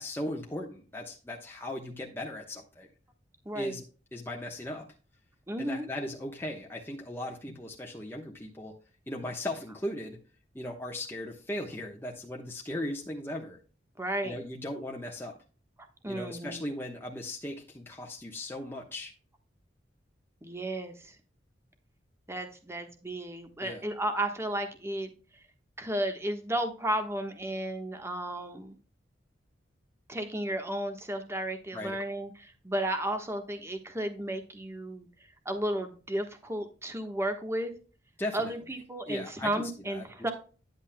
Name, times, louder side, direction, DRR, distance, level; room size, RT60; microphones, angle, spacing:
voice 1, 0.0-2.9 3.5-3.8 4.1-4.9 5.6-8.7 9.1-10.2 10.5-13.6 14.2-15.4 16.1-19.1 23.6-23.8 31.7-32.0 38.2-38.5 39.1-40.1, left 1 dB, 15° left, -1 dB, 1.1 m, -37 dB
voice 2, 3.4-3.8 5.5-5.9 14.0-14.4 16.0-16.7 20.4-21.1 22.3-25.4 25.8-28.8 30.1-35.1 35.4-37.7 38.3-40.3, right 1 dB, 15° right, 7 dB, 1.2 m, -33 dB
10.5 x 8.1 x 2.2 m, 0.36 s
head